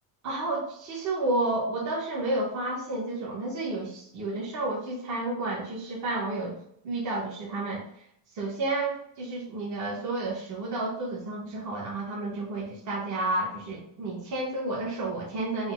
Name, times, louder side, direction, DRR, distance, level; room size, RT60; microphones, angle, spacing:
voice 1, 0.2-6.6 6.8-7.8 8.4-15.7, right 2 dB, 40° right, -4 dB, 0.9 m, -31 dB
4.1 x 2.1 x 4.4 m, 0.72 s
cardioid pair, 150°, 46 cm